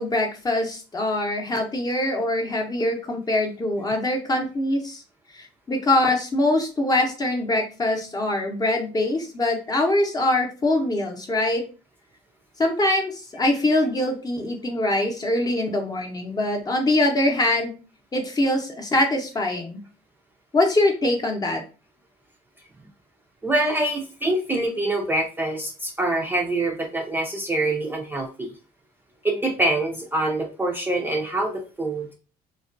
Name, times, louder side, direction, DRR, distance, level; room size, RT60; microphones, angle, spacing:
voice 1, 0.0-5.0 5.3-11.6 12.6-17.7 18.1-19.8 20.5-21.6, left 1 dB, 25° left, 1 dB, 0.7 m, -23 dB
voice 2, 23.4-28.5 29.2-32.1, right 1 dB, 15° right, 0 dB, 0.4 m, -25 dB
2.3 x 2.2 x 2.5 m, 0.35 s
cardioid pair, 90°, 16 cm